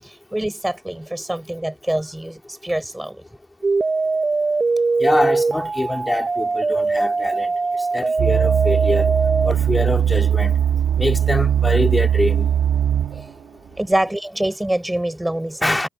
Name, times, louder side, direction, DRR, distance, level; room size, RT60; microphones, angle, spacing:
voice 1, 0.0-3.2 10.9-11.0 13.1-13.3 13.6-15.9, right 1 dB, 5° right, 5.5 m, -25 dB
sound 1, 3.6-9.5, right 3 dB, 25° right, 5.1 m, -21 dB
voice 2, 5.0-7.5 7.9-9.1 9.4-10.5 11.0-12.5 15.6-15.9, left 1 dB, 10° left, 3.3 m, -24 dB
sound 2, 8.2-13.3 13.9-14.0, right 9 dB, 70° right, 1.2 m, -19 dB
cardioid pair, 90°, 0 cm